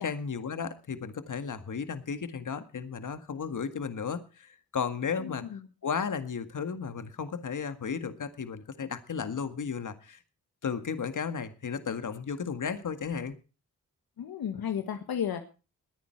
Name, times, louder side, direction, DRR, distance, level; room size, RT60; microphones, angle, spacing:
voice 1, 0.0-5.4 5.8-10.2 10.6-13.4, left 6 dB, 55° left, 10 dB, 1.8 m, -34 dB
voice 2, 5.2-5.6 14.2-15.4, left 8 dB, 75° left, 7 dB, 1.4 m, -33 dB
21.0 x 9.6 x 4.5 m, 0.34 s
supercardioid pair, 50°, 37 cm